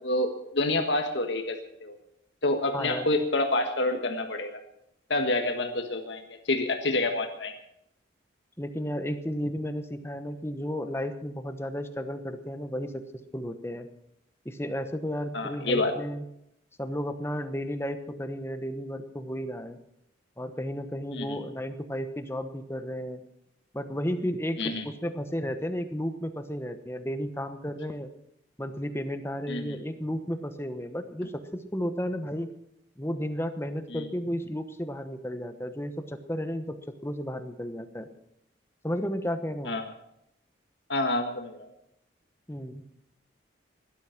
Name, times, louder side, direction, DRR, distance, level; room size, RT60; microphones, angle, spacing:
voice 1, 0.0-2.0 2.4-4.6 5.1-7.5 15.3-15.9 21.1-21.4 24.6-24.9 29.5-29.8 33.9-34.0 39.6-39.9 40.9-41.7, left 2 dB, 70° left, 5 dB, 1.6 m, -28 dB
voice 2, 2.7-3.1 8.6-13.0 13.3-13.9 14.4-16.2 16.8-19.8 20.4-23.2 23.7-28.1 28.6-32.5 33.0-38.1 38.8-39.8 42.5-42.8, equal, 15° left, 8 dB, 1.0 m, -33 dB
17.5 x 12.0 x 5.9 m, 0.79 s
head